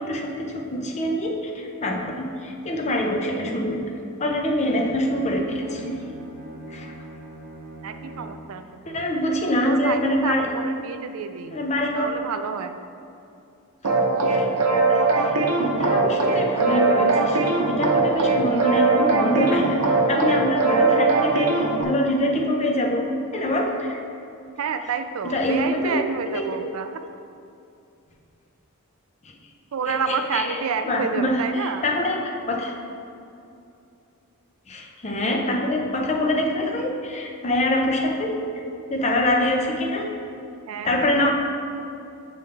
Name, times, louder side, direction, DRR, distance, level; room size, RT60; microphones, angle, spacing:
voice 1, 0.0-3.9 4.2-6.0 6.7-6.9 8.8-10.5 11.5-12.1 14.3-14.5 14.9-23.1 23.3-24.0 25.2-26.0 26.3-26.7 29.2-29.3 29.9-30.6 30.8-32.7 34.7-38.4 38.9-40.1 40.8-41.3, left 1 dB, 30° left, 1 dB, 0.6 m, -25 dB
Bowed string instrument, 4.7-8.5, right 1 dB, 35° right, 0.7 m, -41 dB
voice 2, 7.8-9.0 9.6-11.6 11.9-12.8 24.6-27.0 29.7-31.8 40.7-41.1, right 6 dB, 65° right, 9 dB, 0.4 m, -29 dB
sound 1, 13.8-21.8, right 3 dB, 85° right, 0.7 m, -20 dB
7.4 x 5.3 x 3.3 m, 2.6 s
head